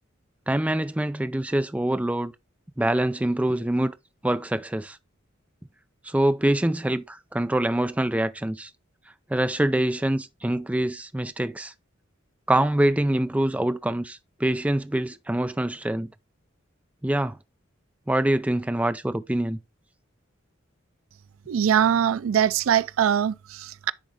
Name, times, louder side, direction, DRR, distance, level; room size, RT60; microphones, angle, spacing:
voice 1, 0.5-2.3 2.8-3.9 4.2-5.0 6.0-8.7 9.3-11.7 12.5-16.1 17.0-17.4 18.1-19.6, right 1 dB, 5° right, 0.3 m, -25 dB
voice 2, 21.5-23.9, right 9 dB, 85° right, 0.4 m, -22 dB
10.0 x 3.7 x 3.3 m
head